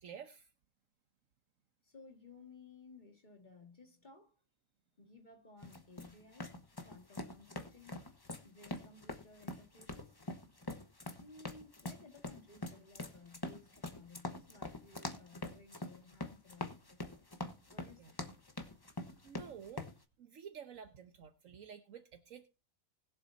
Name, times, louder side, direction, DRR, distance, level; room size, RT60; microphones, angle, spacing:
voice 1, 0.0-0.5 18.0-18.1 19.0-19.9 20.2-22.5, right 7 dB, 70° right, 1.3 m, -51 dB
voice 2, 1.8-4.4 5.0-8.0 8.4-10.2 11.2-17.0 17.7-18.2, left 3 dB, 35° left, 2.0 m, -58 dB
sound 1, 5.6-20.0, left 2 dB, 20° left, 1.0 m, -44 dB
20.0 x 7.5 x 2.7 m
omnidirectional pair, 1.4 m